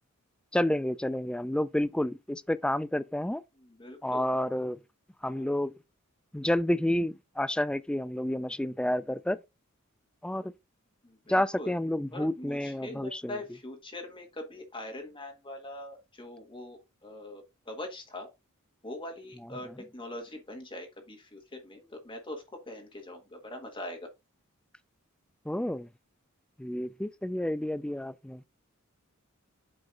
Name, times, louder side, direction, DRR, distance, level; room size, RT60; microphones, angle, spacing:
voice 1, 0.5-3.4 4.0-4.8 5.2-5.7 6.3-9.4 10.2-10.5 11.3-13.2 25.5-25.9 26.6-28.4, left 1 dB, 5° left, 0.3 m, -29 dB
voice 2, 3.5-4.4 5.2-5.6 11.0-11.8 12.1-18.3 18.8-24.0, left 1 dB, 25° left, 1.4 m, -42 dB
7.8 x 5.4 x 2.5 m
head